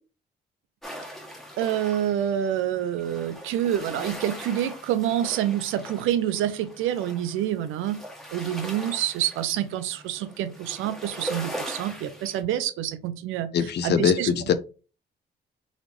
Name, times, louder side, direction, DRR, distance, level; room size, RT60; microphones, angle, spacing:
sound 1, 0.8-12.4, equal, ahead, 1.4 m, -40 dB
voice 1, 1.6-8.0 8.3-14.3, right 11 dB, 90° right, 12 dB, 0.6 m, -27 dB
voice 2, 13.5-14.5, left 7 dB, 60° left, 13 dB, 0.5 m, -22 dB
4.0 x 3.1 x 3.1 m, 0.34 s
cardioid pair, 90°, 20 cm